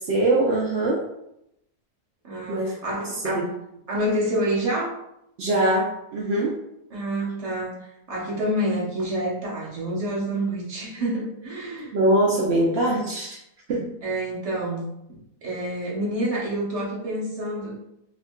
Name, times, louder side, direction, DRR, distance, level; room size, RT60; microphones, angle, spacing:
voice 1, 0.0-1.1 2.5-2.8 3.3-3.5 5.4-6.6 11.9-13.4 13.7-13.9, right 1 dB, 80° right, -3 dB, 0.5 m, -22 dB
voice 2, 2.2-3.5 3.9-4.9 6.9-11.9 14.0-17.8, right 1 dB, 35° right, -5 dB, 0.6 m, -28 dB
3.5 x 2.4 x 2.2 m, 0.80 s
omnidirectional pair, 1.7 m